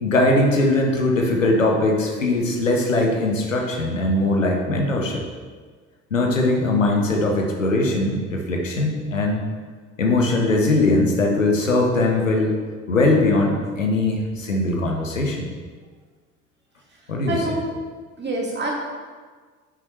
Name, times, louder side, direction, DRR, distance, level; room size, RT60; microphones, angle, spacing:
voice 1, 0.0-5.2 6.1-9.4 10.0-12.5 12.9-15.5 17.1-17.4, left 2 dB, 90° left, 0 dB, 0.9 m, -20 dB
voice 2, 17.3-17.6 18.2-18.7, right 2 dB, 30° right, -2 dB, 2.3 m, -26 dB
9.8 x 6.2 x 3.2 m, 1.5 s
figure-of-eight pair, 50°, 37 cm